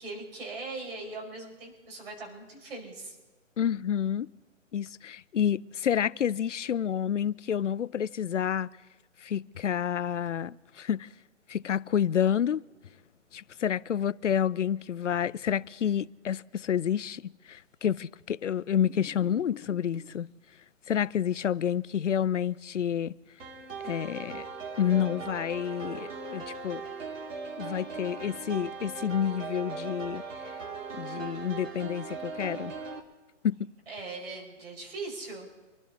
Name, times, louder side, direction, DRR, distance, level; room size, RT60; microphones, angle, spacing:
voice 1, 0.0-3.2 33.9-35.5, right 3 dB, 50° right, 5.4 m, -40 dB
voice 2, 3.6-4.3 4.7-8.7 9.2-11.1 11.5-12.6 13.3-20.3 20.9-23.1 23.8-24.5 24.8-26.8 27.6-30.2 30.9-32.7 33.4-33.7, left 9 dB, 70° left, 0.7 m, -29 dB
sound 1, 18.8-20.3 22.4-22.5, left 8 dB, 85° left, 1.1 m, -47 dB
sound 2, 23.4-33.0, right 4 dB, 75° right, 3.0 m, -39 dB
27.0 x 12.0 x 4.1 m
hypercardioid pair, 160°, 38 cm